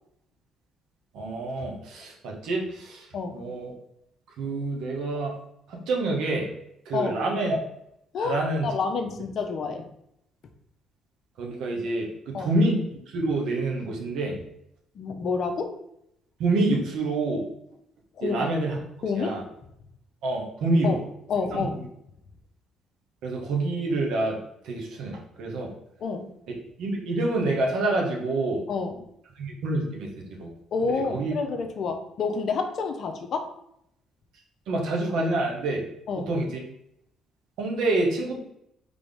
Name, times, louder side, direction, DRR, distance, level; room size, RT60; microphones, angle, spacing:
voice 1, 1.1-3.7 4.4-5.4 5.7-6.5 6.8-7.6 8.2-8.7 11.4-14.4 16.4-17.4 18.2-18.8 19.1-19.4 20.2-21.0 21.5-21.8 23.2-24.4 24.6-25.7 26.8-28.6 29.4-30.1 30.4-30.5 30.8-31.4 34.7-35.8 36.1-36.6 37.6-38.4, right 2 dB, 70° right, 0 dB, 1.1 m, -27 dB
voice 2, 8.1-9.8 12.3-12.5 14.9-15.7 18.2-18.5 19.0-19.4 20.8-21.8 26.0-26.3 28.7-29.1 30.7-33.5 36.1-36.3, left 4 dB, 60° left, 6 dB, 0.6 m, -29 dB
3.9 x 3.4 x 3.5 m, 0.78 s
hypercardioid pair, 60°, 0 cm